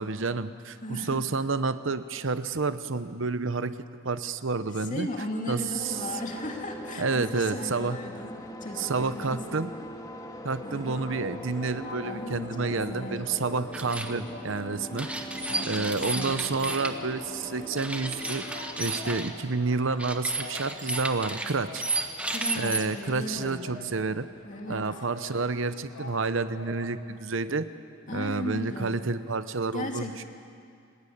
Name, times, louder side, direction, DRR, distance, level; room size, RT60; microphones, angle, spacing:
voice 1, 0.0-3.7 4.0-5.1 5.5-6.0 7.0-8.0 8.8-9.7 10.4-15.1 15.7-18.4 18.8-21.8 22.5-24.3 24.7-27.7 28.1-30.2, right 4 dB, 60° right, 12 dB, 0.8 m, -29 dB
voice 2, 0.8-1.3 4.7-8.3 8.6-9.6 10.6-11.1 12.0-13.2 15.4-16.6 22.3-23.9 24.4-25.0 28.1-28.9 29.7-30.2, left 1 dB, 35° left, 2 dB, 2.8 m, -37 dB
sound 1, 5.8-19.2, equal, 15° left, 2.4 m, -41 dB
sound 2, 10.7-26.9, left 3 dB, 70° left, 2.6 m, -46 dB
sound 3, 13.7-14.1 15.0-16.9 17.8-19.3 20.0-22.8, right 2 dB, 5° right, 1.4 m, -32 dB
29.0 x 19.5 x 8.6 m, 2.4 s
head